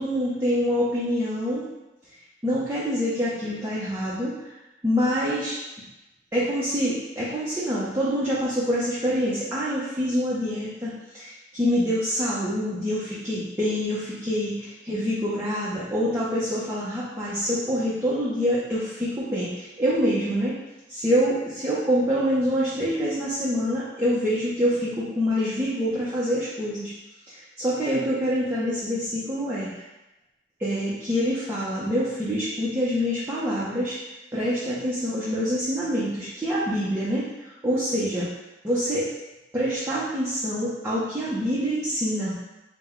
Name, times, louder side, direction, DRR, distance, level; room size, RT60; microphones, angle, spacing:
voice 1, 0.0-1.7 2.4-4.4 4.8-5.6 6.3-20.6 20.9-26.9 27.3-29.7 30.6-34.0 34.3-38.3 38.6-39.1 39.5-42.3, equal, 15° right, -9 dB, 0.6 m, -26 dB
3.8 x 2.2 x 4.3 m, 1.0 s
head